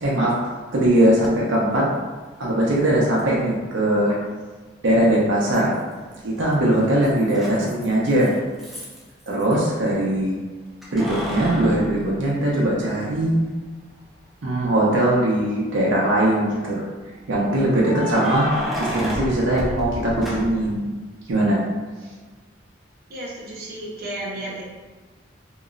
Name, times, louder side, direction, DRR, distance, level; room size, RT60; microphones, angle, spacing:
voice 1, 0.0-1.9 2.4-4.1 4.8-5.8 6.2-8.3 9.3-10.4 10.9-13.4 14.4-16.8 17.3-18.5 18.8-20.9 21.3-21.6, right 1 dB, 85° right, -5 dB, 0.7 m, -20 dB
Keys jangling, 1.2-1.3 3.2-3.3 5.5-6.1 6.4-9.6 10.8-12.9 13.4-13.5 15.3-15.9 17.8-20.8, equal, ahead, 0.4 m, -32 dB
voice 2, 23.1-24.7, right 1 dB, 50° right, -5 dB, 0.7 m, -33 dB
2.9 x 2.9 x 2.5 m, 1.3 s
head